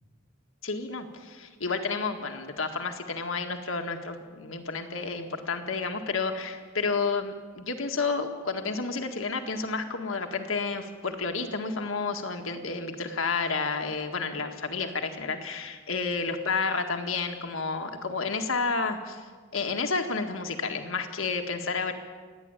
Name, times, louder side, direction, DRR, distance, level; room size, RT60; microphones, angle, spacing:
voice 1, 0.6-19.2 19.5-21.9, left 4 dB, 85° left, 5 dB, 1.8 m, -31 dB
28.5 x 10.5 x 9.0 m, 1.5 s
head